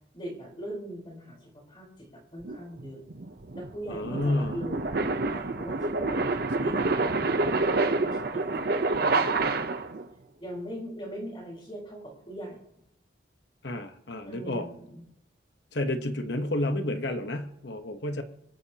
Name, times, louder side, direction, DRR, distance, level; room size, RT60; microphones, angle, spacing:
voice 1, 0.1-3.0 3.5-6.2 6.6-9.6 10.4-12.6 14.2-15.0, equal, 25° left, -2 dB, 4.2 m, -40 dB
sound 1, 2.4-10.0, right 3 dB, 50° right, 0.8 m, -28 dB
voice 2, 3.9-4.6 13.6-14.7 15.7-18.2, left 1 dB, 60° left, 6 dB, 1.1 m, -30 dB
26.0 x 9.4 x 2.9 m, 0.82 s
head